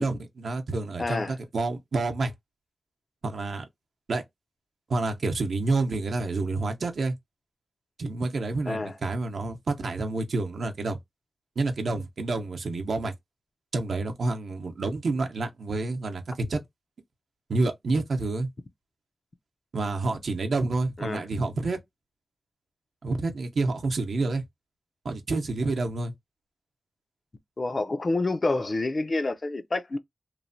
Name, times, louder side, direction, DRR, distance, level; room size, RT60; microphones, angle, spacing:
voice 1, 0.0-2.3 3.2-3.6 4.1-4.2 4.9-7.1 8.0-11.0 11.6-13.1 13.7-16.6 17.5-18.5 19.7-21.8 23.0-24.4 25.0-26.1, right 3 dB, 70° right, 0.6 m, -28 dB
voice 2, 1.0-1.4 8.7-9.0 21.0-21.2 27.6-30.0, left 2 dB, 40° left, 0.4 m, -28 dB
3.1 x 2.1 x 2.5 m
wide cardioid pair, 80°, 0 cm